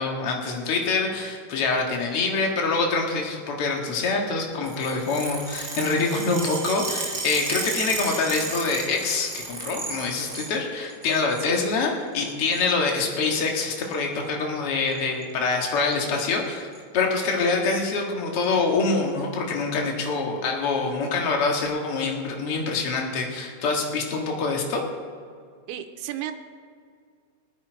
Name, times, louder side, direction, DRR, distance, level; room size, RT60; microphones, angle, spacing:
voice 1, 0.0-16.7 16.9-24.8, left 4 dB, 45° left, 1 dB, 2.1 m, -25 dB
sound 1, 4.6-10.5 10.9-11.5 12.2-12.7 13.8-14.0 15.0-15.2 15.5-15.6 15.9-16.0 16.3-16.8 17.4-17.5 18.4-18.5, right 3 dB, 35° right, 2.5 m, -33 dB
voice 2, 25.7-26.3, right 11 dB, 90° right, 7 dB, 2.8 m, -33 dB
22.0 x 10.0 x 4.5 m, 2.2 s
omnidirectional pair, 4.5 m